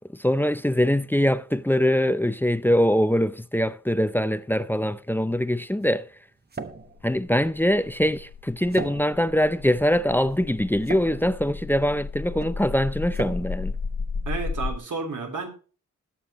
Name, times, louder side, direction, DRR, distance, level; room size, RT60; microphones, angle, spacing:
voice 1, 0.1-6.1 7.0-13.7, equal, 5° left, 0.5 m, -23 dB
sound 1, 4.9-14.7, right 4 dB, 30° right, 1.1 m, -41 dB
sound 2, 6.8-14.8, left 4 dB, 75° left, 1.6 m, -34 dB
voice 2, 14.3-15.5, right 4 dB, 75° right, 3.2 m, -31 dB
20.5 x 7.0 x 3.0 m
wide cardioid pair, 120°, 31 cm